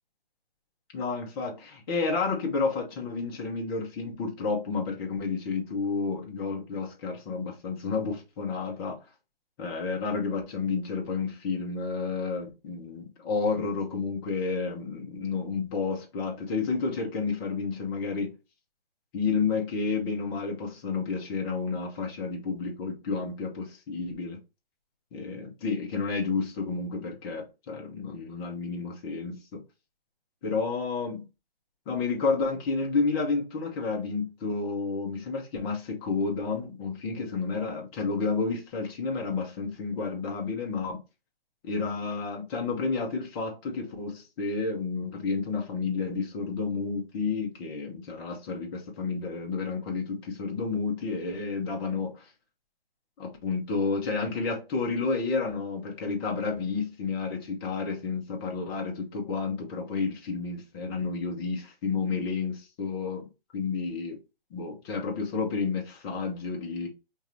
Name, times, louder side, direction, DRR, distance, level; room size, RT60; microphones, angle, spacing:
voice 1, 0.9-9.0 9.6-18.4 19.1-24.4 25.1-29.6 30.4-31.2 31.9-41.0 41.6-52.3 53.2-64.2 64.5-66.9, left 4 dB, 25° left, 1.1 m, -31 dB
5.2 x 2.6 x 3.0 m
hypercardioid pair, 145°, 30 cm